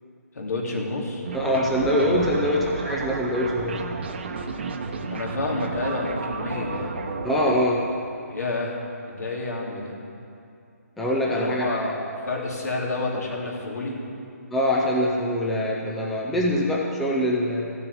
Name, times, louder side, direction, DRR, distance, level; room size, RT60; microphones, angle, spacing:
voice 1, 0.3-1.2 1.8-2.5 5.1-7.0 8.3-8.7 9.1-9.9 11.2-14.0, left 2 dB, 75° left, -1 dB, 3.1 m, -29 dB
sound 1, 1.2-7.6, right 4 dB, 40° right, 0.9 m, -32 dB
voice 2, 1.3-3.8 7.2-7.9 11.0-11.8 14.5-17.7, equal, ahead, -4 dB, 0.4 m, -24 dB
14.5 x 7.0 x 8.2 m, 2.5 s
hypercardioid pair, 170°, 9 cm